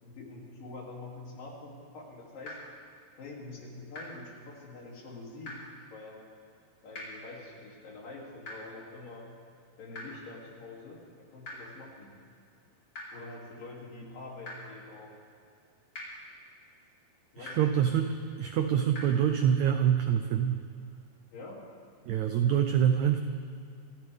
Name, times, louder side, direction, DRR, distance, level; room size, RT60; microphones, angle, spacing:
voice 1, 0.0-2.6 3.2-5.6 5.9-6.3 6.8-9.3 9.8-12.1 13.1-15.1 17.3-17.8 21.3-21.6, left 3 dB, 70° left, -3 dB, 4.5 m, -46 dB
sound 1, 2.4-2.5 3.9-4.0 5.4-5.5 6.9-7.0 8.4-8.5 9.9-10.0 11.4-11.5 12.9-13.0 14.4-14.5 15.9-16.0 17.4-17.5 18.9-19.0, left 2 dB, 40° left, 5.2 m, -40 dB
voice 2, 17.4-20.7 22.1-23.2, right 9 dB, 90° right, 7 dB, 1.6 m, -26 dB
26.0 x 15.0 x 3.6 m, 2.4 s
omnidirectional pair, 4.2 m